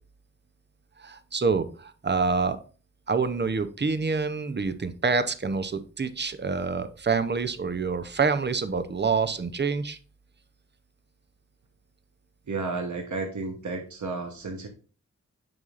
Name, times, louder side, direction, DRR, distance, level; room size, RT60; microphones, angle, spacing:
voice 1, 1.0-2.6 3.1-10.0, right 4 dB, 35° right, 11 dB, 0.7 m, -27 dB
voice 2, 12.5-14.7, right 3 dB, 75° right, 4 dB, 1.0 m, -32 dB
7.8 x 5.6 x 2.5 m, 0.37 s
wide cardioid pair, 65°, 30 cm